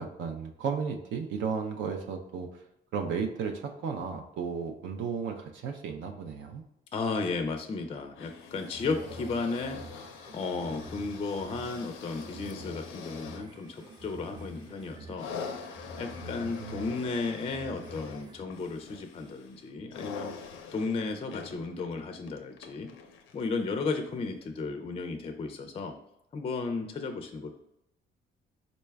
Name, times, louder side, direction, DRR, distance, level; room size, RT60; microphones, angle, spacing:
voice 1, 0.0-2.6 2.9-6.6 16.2-16.9, right 6 dB, 70° right, 4 dB, 0.4 m, -34 dB
voice 2, 6.9-9.8 10.3-15.3 15.6-15.7 16.0-20.3 20.7-22.9 23.3-25.9 26.3-27.5, left 4 dB, 30° left, 6 dB, 0.4 m, -34 dB
sound 1, 8.1-23.6 24.4-24.5, left 5 dB, 85° left, 0.5 m, -45 dB
sound 2, 8.5-18.4, right 1 dB, 20° right, 0.5 m, -48 dB
4.0 x 2.2 x 3.3 m, 0.84 s
cardioid pair, 90°, 20 cm